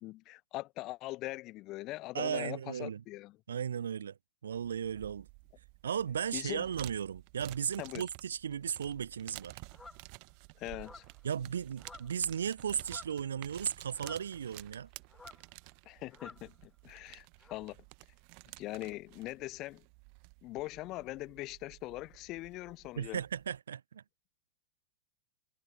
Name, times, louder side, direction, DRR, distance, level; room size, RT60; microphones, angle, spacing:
voice 1, 0.0-3.4 6.3-6.6 7.8-8.0 10.6-11.0 15.9-17.8 18.6-19.8 20.4-23.2, left 18 dB, 40° left, 0.9 m, -41 dB
voice 2, 2.1-3.0 3.5-4.2 4.4-5.3 5.8-9.6 11.2-14.9 23.0-24.0, right 8 dB, 65° right, 0.3 m, -36 dB
sound 1, 4.5-23.6, right 40 dB or more, 45° right, 0.8 m, -53 dB
sound 2, 9.7-10.1 10.8-11.2 11.8-12.3 12.6-13.3 13.9-14.8 15.1-15.5 16.1-16.5 17.4-17.5, left 3 dB, 10° left, 0.6 m, -53 dB
figure-of-eight pair, 90°, 0 cm